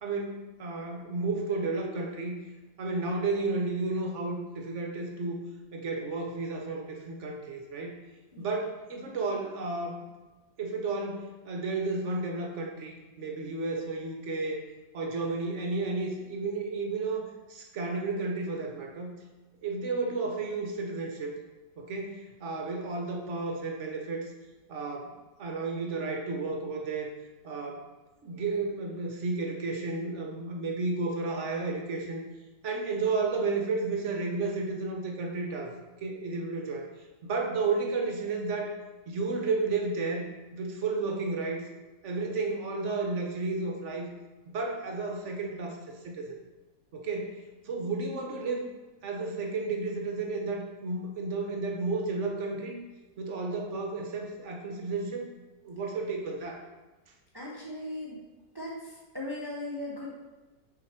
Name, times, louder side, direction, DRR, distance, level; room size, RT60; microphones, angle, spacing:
voice 1, 0.0-2.3 2.8-5.4 5.7-7.9 8.4-10.0 10.6-14.6 14.9-19.1 19.6-21.3 21.8-24.3 24.7-25.1 25.4-27.1 27.4-27.9 28.2-32.2 32.6-35.7 36.0-36.9 37.2-38.8 39.1-40.3 40.5-41.6 42.0-44.1 44.5-45.8 46.0-46.4 46.9-47.4 47.6-48.7 49.0-52.8 53.2-55.3 55.6-56.6, right 3 dB, 55° right, 1 dB, 0.8 m, -32 dB
voice 2, 57.3-58.2 58.5-60.1, left 1 dB, 20° right, -4 dB, 0.8 m, -38 dB
6.4 x 3.9 x 4.4 m, 1.2 s
omnidirectional pair, 1.9 m